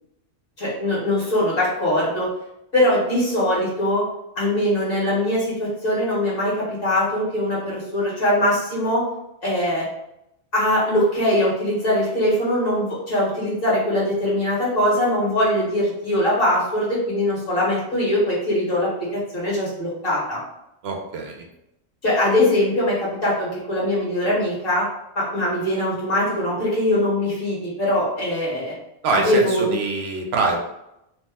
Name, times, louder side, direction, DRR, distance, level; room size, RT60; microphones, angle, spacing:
voice 1, 0.6-2.3 2.7-4.0 4.3-9.0 9.4-9.9 10.5-20.4 22.0-24.9 25.1-28.7 29.1-29.7, left 1 dB, 55° left, -7 dB, 1.5 m, -22 dB
voice 2, 20.8-21.5 29.0-30.6, right 3 dB, 75° right, 2 dB, 0.8 m, -24 dB
2.9 x 2.1 x 3.4 m, 0.84 s
omnidirectional pair, 1.1 m